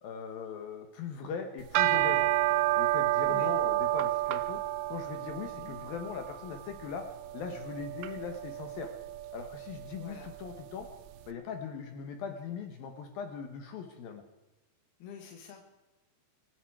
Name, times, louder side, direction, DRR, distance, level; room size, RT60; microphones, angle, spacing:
voice 1, 0.0-2.3 2.8-4.6 4.9-7.1 7.3-8.9 9.3-10.9 11.3-14.2, left 6 dB, 80° left, 6 dB, 2.1 m, -40 dB
sound 1, 1.6-10.9, right 14 dB, 90° right, 2.5 m, -31 dB
voice 2, 9.8-10.3 15.0-15.8, left 8 dB, 65° left, 2 dB, 2.8 m, -48 dB
25.0 x 11.0 x 4.8 m, 1.1 s
omnidirectional pair, 5.9 m